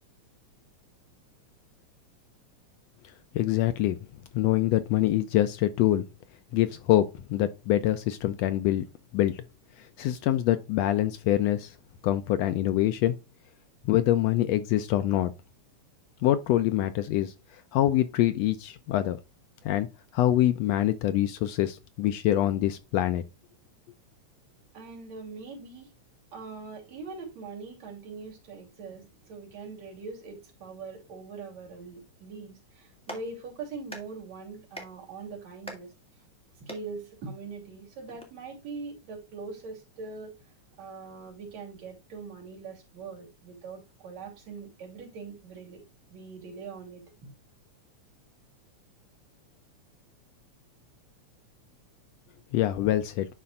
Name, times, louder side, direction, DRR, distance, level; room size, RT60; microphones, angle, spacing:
voice 1, 3.3-4.0 4.3-6.1 6.5-8.8 9.1-9.4 10.0-11.7 12.0-13.2 13.8-15.3 16.2-17.3 17.7-19.2 19.6-19.9 20.1-23.2 52.5-53.3, left 13 dB, 75° left, 1.6 m, -25 dB
voice 2, 24.7-25.9 26.3-35.9 36.6-40.3 40.8-45.8 46.1-47.3, right 4 dB, 70° right, 4.1 m, -42 dB
Clapping, 32.8-38.2, equal, ahead, 1.6 m, -48 dB
11.5 x 4.3 x 2.4 m
omnidirectional pair, 3.3 m